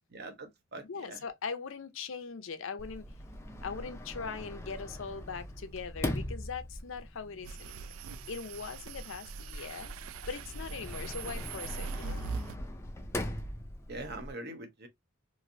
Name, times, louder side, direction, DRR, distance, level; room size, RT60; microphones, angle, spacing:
voice 1, 0.1-1.2 13.9-14.9, right 2 dB, 50° right, 0.8 m, -43 dB
voice 2, 0.8-3.1 3.6-7.9 8.3-9.9 10.3-12.2, left 5 dB, 65° left, 0.5 m, -41 dB
Sliding door, 2.8-14.3, left 1 dB, 10° left, 0.3 m, -41 dB
sound 1, 7.4-12.6, right 4 dB, 75° right, 0.3 m, -41 dB
3.1 x 2.5 x 2.6 m
head